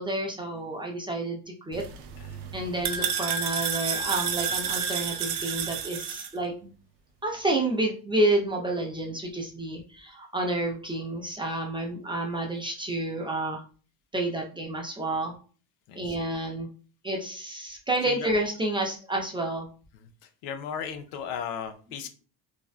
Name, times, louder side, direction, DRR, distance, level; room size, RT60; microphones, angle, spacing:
voice 1, 0.0-1.8 2.5-6.7 7.2-13.6 14.1-15.3 15.9-16.7 17.0-19.7, right 2 dB, 15° right, 0 dB, 0.4 m, -29 dB
sound 1, 1.7-6.3, right 7 dB, 85° right, 0.5 m, -30 dB
voice 2, 15.9-16.2 18.0-18.3 20.4-22.1, left 7 dB, 75° left, 7 dB, 0.6 m, -35 dB
2.5 x 2.1 x 2.4 m, 0.38 s
supercardioid pair, 100°, 41 cm